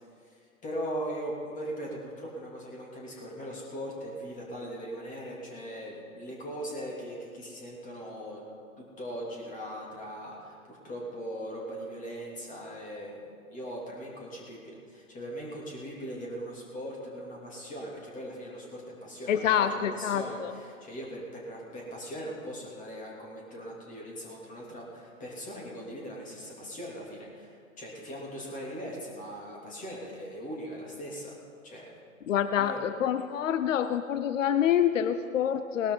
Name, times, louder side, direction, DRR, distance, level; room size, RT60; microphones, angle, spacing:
voice 1, 0.2-8.5 8.8-31.4 31.6-31.9 32.6-32.9, equal, 20° left, -3 dB, 3.1 m, -40 dB
voice 2, 19.3-20.5 32.3-35.9, left 9 dB, 65° left, 11 dB, 0.7 m, -27 dB
19.5 x 12.5 x 4.0 m, 2.2 s
figure-of-eight pair, 110°, 42 cm